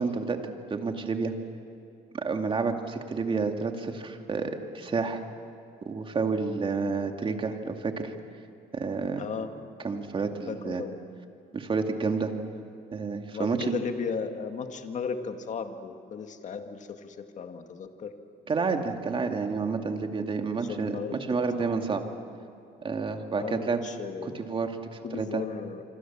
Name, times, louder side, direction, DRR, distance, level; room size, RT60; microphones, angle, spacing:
voice 1, 0.0-1.3 2.1-5.2 5.9-8.1 8.7-9.2 9.8-10.8 11.5-12.3 12.9-13.8 18.5-22.0 22.8-23.8 24.2-25.4, right 4 dB, 30° right, 5 dB, 2.4 m, -30 dB
voice 2, 9.2-9.5 10.5-11.0 13.3-18.1 20.5-21.7 23.3-24.4 25.0-25.8, left 5 dB, 45° left, 6 dB, 2.0 m, -36 dB
26.5 x 25.0 x 7.4 m, 2.7 s
cardioid pair, 110°, 17 cm